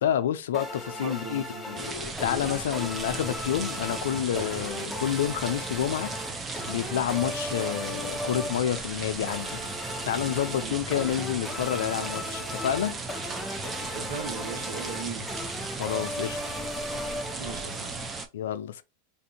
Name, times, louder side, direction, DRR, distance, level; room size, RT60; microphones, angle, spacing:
voice 1, 0.0-6.2 6.6-9.6 10.0-13.0 15.8-16.6 18.3-18.8, left 10 dB, 80° left, 0.4 m, -29 dB
sound 1, 0.5-18.0, left 1 dB, 5° left, 0.9 m, -38 dB
voice 2, 1.0-1.7 10.6-10.8 13.8-15.3 17.4-18.1, right 5 dB, 65° right, 1.0 m, -38 dB
sound 2, 1.8-18.3, right 3 dB, 20° right, 0.6 m, -36 dB
3.4 x 2.5 x 2.7 m
hypercardioid pair, 120°, 0 cm